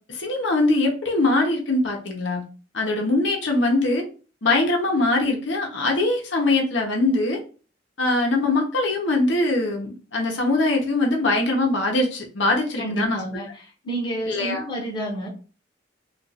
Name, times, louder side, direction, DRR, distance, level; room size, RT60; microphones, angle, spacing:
voice 1, 0.1-2.4 2.7-4.0 4.4-7.4 8.0-13.2 14.3-14.6, left 2 dB, 75° left, 1 dB, 0.9 m, -22 dB
voice 2, 12.8-15.3, right 1 dB, 25° left, -2 dB, 0.8 m, -30 dB
2.5 x 2.4 x 4.1 m, 0.36 s
head